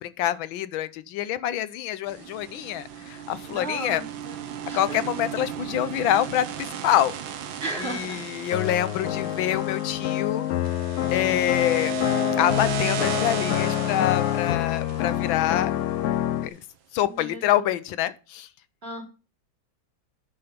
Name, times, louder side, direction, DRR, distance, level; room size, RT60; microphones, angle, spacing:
voice 1, 0.0-4.0 4.7-7.1 7.8-10.4 11.1-11.9 12.4-15.7 16.4-16.6 16.9-18.5, left 12 dB, 90° left, 1.5 m, -26 dB
sound 1, 2.1-16.2, right 7 dB, 90° right, 1.7 m, -35 dB
voice 2, 3.4-5.0 7.6-8.2 17.0-17.6 18.8-19.0, right 1 dB, 30° right, 3.3 m, -35 dB
sound 2, 8.5-16.5, left 12 dB, 70° left, 0.9 m, -26 dB
10.0 x 5.8 x 5.1 m
omnidirectional pair, 2.1 m